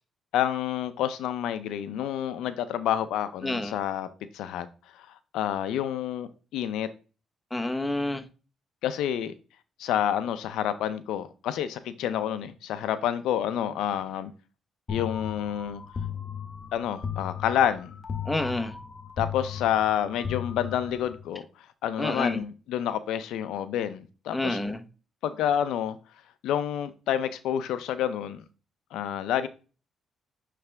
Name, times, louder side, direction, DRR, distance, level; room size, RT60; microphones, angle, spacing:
voice 1, 0.3-4.1 4.3-4.7 5.1-6.9 8.8-9.3 9.8-14.3 14.9-15.8 16.7-18.0 19.2-21.4 21.8-24.6 25.2-26.0 26.4-28.4 28.9-29.5, left 10 dB, 85° left, 0.5 m, -28 dB
voice 2, 7.5-8.2 18.3-18.7 22.0-22.4 24.3-24.8, left 1 dB, 10° left, 1.0 m, -28 dB
sound 1, 14.9-21.3, left 7 dB, 40° left, 1.2 m, -36 dB
9.4 x 3.3 x 3.4 m
cardioid pair, 90°, 0 cm